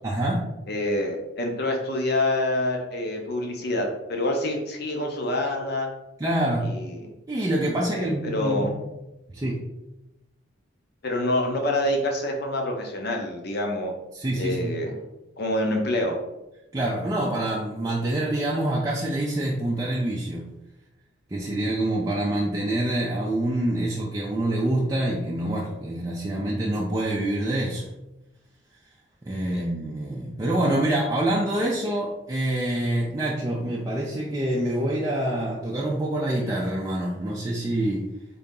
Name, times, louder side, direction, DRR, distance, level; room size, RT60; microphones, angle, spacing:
voice 1, 0.0-0.4 6.2-6.7 7.3-8.7 9.3-9.6 14.1-14.7 16.7-20.5 21.3-27.9 29.2-38.0, right 1 dB, 20° right, -4 dB, 0.4 m, -26 dB
voice 2, 0.7-5.9 6.6-7.1 7.9-8.7 11.0-13.9 14.4-14.9 15.4-16.2 29.5-29.6, left 1 dB, 55° left, 2 dB, 0.8 m, -26 dB
3.8 x 2.8 x 3.6 m, 0.96 s
head